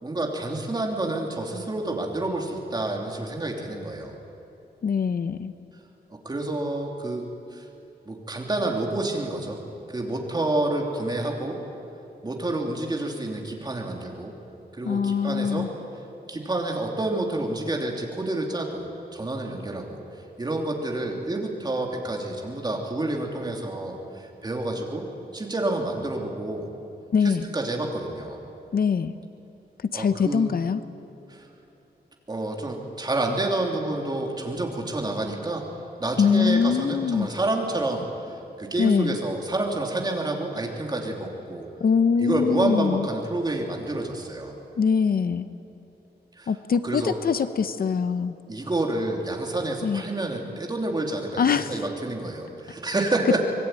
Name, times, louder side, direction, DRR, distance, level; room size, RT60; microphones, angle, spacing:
voice 1, 0.0-4.1 6.2-7.6 8.0-9.6 9.9-11.6 12.2-14.3 14.7-15.7 16.3-20.0 20.4-25.0 25.3-26.7 27.2-28.4 29.9-30.5 31.3-31.5 32.3-35.7 36.0-38.1 38.6-41.7 42.2-44.5 46.4-46.5 46.8-47.2 48.5-53.5, right 2 dB, 25° right, 0 dB, 3.0 m, -28 dB
voice 2, 4.8-5.5 14.8-15.7 27.1-27.5 28.7-29.1 29.9-30.8 36.2-37.3 38.8-39.2 41.8-43.1 44.8-45.5 46.5-48.3 49.8-50.0 51.4-51.7, left 6 dB, 60° left, 11 dB, 0.7 m, -23 dB
25.0 x 20.0 x 9.1 m, 2.9 s
wide cardioid pair, 180°, 17 cm